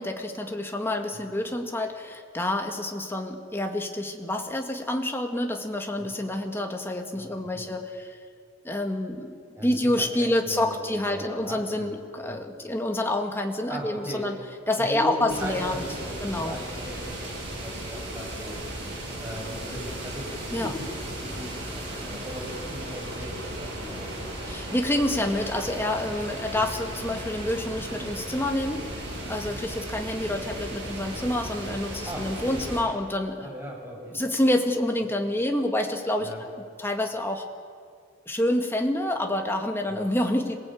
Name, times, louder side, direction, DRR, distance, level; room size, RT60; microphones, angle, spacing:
voice 1, 0.0-8.1 8.6-9.3 9.6-14.4 14.7-15.9 16.2-16.6 20.5-20.7 24.5-33.5 34.1-36.3 36.8-37.5 38.3-40.6, left 1 dB, 10° left, 3 dB, 1.9 m, -28 dB
voice 2, 7.1-7.6 9.5-12.0 12.3-12.4 13.7-14.3 14.8-18.6 19.2-20.9 21.2-24.2 26.6-26.7 32.0-32.7 33.4-34.2 36.2-36.4 39.9-40.0, equal, 15° right, -1 dB, 6.1 m, -38 dB
sound 1, 15.3-32.8, right 1 dB, 60° right, 7.9 m, -36 dB
27.0 x 18.5 x 8.6 m, 2.1 s
head